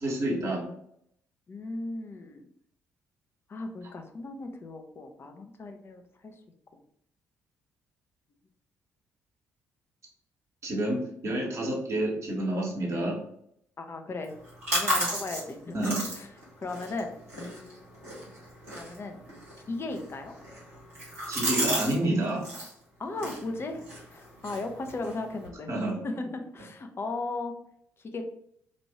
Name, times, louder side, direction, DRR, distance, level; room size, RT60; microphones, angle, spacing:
voice 1, 0.0-0.6 10.6-13.2 15.7-16.0 21.3-22.4 25.7-26.0, right 1 dB, 45° right, -1 dB, 1.4 m, -29 dB
voice 2, 1.5-2.5 3.5-6.3 13.8-14.3 14.7-16.3 16.6-17.9 18.7-19.2 19.7-20.3 23.0-23.8 24.1-25.7 26.0-27.5 28.1-28.2, left 2 dB, 35° left, 5 dB, 0.6 m, -36 dB
sound 1, 14.2-22.0 22.2-22.7 23.1-25.5, equal, 80° right, 1.2 m, -34 dB
3.1 x 2.6 x 4.2 m, 0.70 s
figure-of-eight pair, 45°, 7 cm